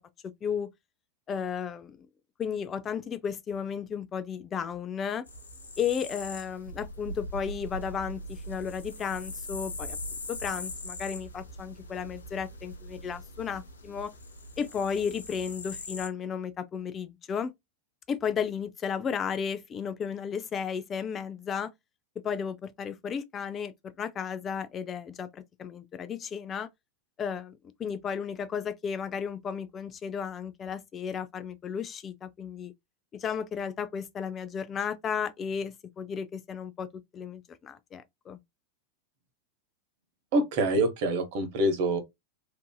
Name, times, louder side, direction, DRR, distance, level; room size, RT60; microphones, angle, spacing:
voice 1, 1.3-2.1 2.4-5.3 5.8-10.0 10.3-14.1 14.6-17.5 18.1-21.7 22.2-26.7 27.2-32.7 33.1-36.9 37.1-38.4, left 7 dB, 30° left, 0.3 m, -34 dB
sound 1, 5.3-16.1, left 1 dB, 85° left, 0.6 m, -41 dB
voice 2, 40.3-42.0, right 1 dB, 55° right, 0.8 m, -25 dB
2.6 x 2.6 x 2.2 m
hypercardioid pair, 95°, 0 cm